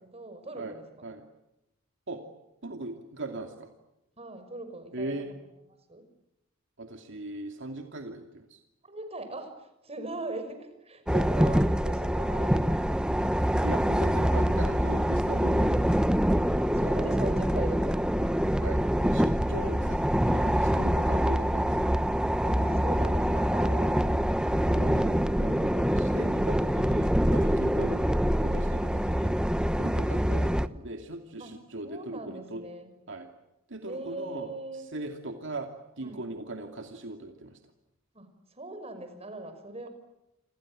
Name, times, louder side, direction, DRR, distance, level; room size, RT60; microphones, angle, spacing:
voice 1, 0.1-1.1 4.2-5.2 5.7-6.1 8.8-13.3 16.7-18.0 22.6-24.2 28.6-28.9 31.4-31.5 31.8-32.9 33.9-34.9 36.0-36.3 38.1-39.9, right 2 dB, 30° right, 9 dB, 5.8 m, -40 dB
voice 2, 2.6-3.7 4.9-5.3 6.8-8.6 13.6-15.8 16.8-17.4 18.4-21.9 22.4-22.8 24.7-28.1 28.4-29.3 29.8-32.6 33.1-33.3 33.7-34.5 34.9-35.7 36.0-37.6, right 2 dB, 60° right, 5 dB, 2.6 m, -39 dB
sound 1, 11.1-30.7, equal, 5° right, 0.9 m, -25 dB
29.0 x 26.5 x 7.6 m, 0.89 s
head